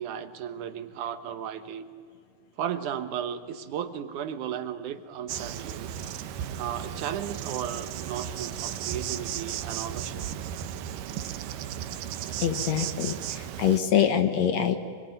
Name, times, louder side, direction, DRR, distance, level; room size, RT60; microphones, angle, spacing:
voice 1, 0.0-1.9 2.6-5.9 6.5-10.3, right 9 dB, 70° right, 10 dB, 2.5 m, -35 dB
Insect, 5.3-13.8, right 10 dB, 90° right, 2.6 m, -35 dB
voice 2, 12.4-14.8, left 9 dB, 60° left, 8 dB, 2.3 m, -25 dB
26.0 x 21.5 x 9.4 m, 2.3 s
omnidirectional pair, 3.7 m